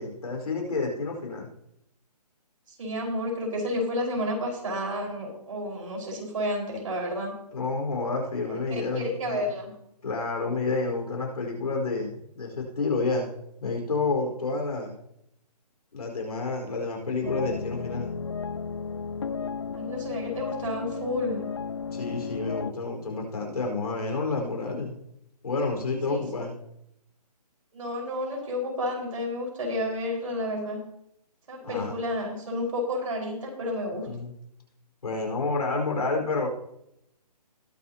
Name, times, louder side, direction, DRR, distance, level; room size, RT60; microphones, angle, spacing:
voice 1, 0.0-1.5 7.5-9.5 10.0-13.3 13.6-14.9 15.9-18.1 21.9-25.0 25.4-26.5 31.6-31.9 34.0-34.3 35.0-36.5, left 3 dB, 65° left, 1 dB, 4.7 m, -29 dB
voice 2, 2.7-7.3 8.7-9.7 19.7-21.5 26.1-26.2 27.7-30.8 31.5-34.1, left 1 dB, 50° right, 0 dB, 5.1 m, -31 dB
sound 1, 17.2-22.7, left 5 dB, 40° left, 0.4 m, -34 dB
20.5 x 8.1 x 2.9 m, 0.77 s
hypercardioid pair, 165°, 21 cm